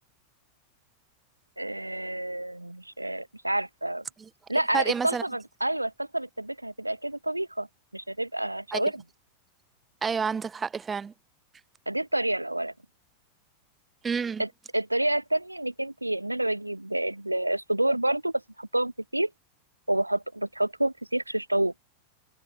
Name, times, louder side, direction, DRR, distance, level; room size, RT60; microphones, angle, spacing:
voice 1, 1.6-4.0 4.5-7.7 7.9-9.0 11.9-12.7 14.4-19.3 19.9-21.7, right 1 dB, 85° right, 5.9 m, -28 dB
voice 2, 4.7-5.2 8.7-8.8 10.0-11.1 14.0-14.4, right 6 dB, 15° right, 5.3 m, -29 dB
figure-of-eight pair, 90°, 0 cm